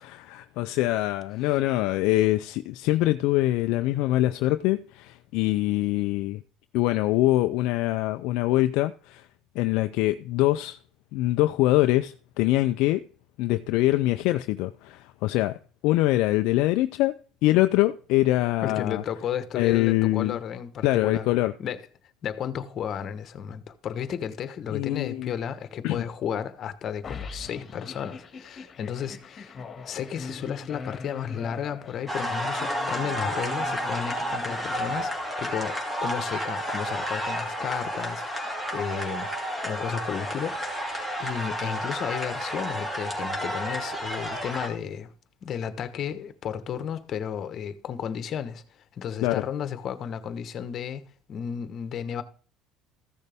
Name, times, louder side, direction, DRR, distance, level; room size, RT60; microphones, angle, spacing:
voice 1, 0.1-6.4 6.7-9.3 9.6-10.8 11.1-13.0 13.4-15.6 15.8-19.0 19.5-20.4 20.8-21.5 24.7-25.3 25.8-26.0 49.2-49.4, left 17 dB, 75° left, 0.4 m, -24 dB
voice 2, 18.6-21.3 21.6-21.8 22.2-29.6 29.9-35.1 35.4-39.3 39.6-40.7 41.2-45.1 45.4-48.6 49.0-52.2, left 8 dB, 50° left, 1.1 m, -33 dB
sound 1, 27.0-35.3, left 5 dB, 35° left, 1.8 m, -41 dB
sound 2, 32.1-44.7, equal, 10° right, 2.7 m, -31 dB
14.5 x 6.6 x 3.5 m
supercardioid pair, 100°, 0 cm